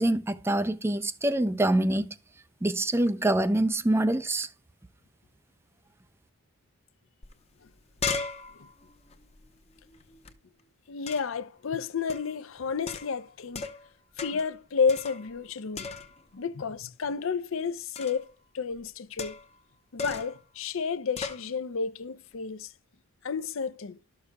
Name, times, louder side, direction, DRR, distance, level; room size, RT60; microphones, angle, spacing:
voice 1, 0.0-2.1 2.6-4.5, right 1 dB, 10° right, 0.3 m, -25 dB
sound 1, 7.2-7.3 7.6-10.3 11.1-11.4 12.1-12.4 12.9-13.9 14.2-14.5 14.9-15.5 15.7-16.3 17.9-18.3 19.2-19.6 20.0-20.4 21.2-21.5, left 4 dB, 30° left, 0.8 m, -37 dB
voice 2, 10.9-13.7 14.2-15.9 16.3-19.4 19.9-22.7 23.2-24.0, left 5 dB, 65° left, 0.5 m, -31 dB
12.5 x 6.7 x 2.2 m
head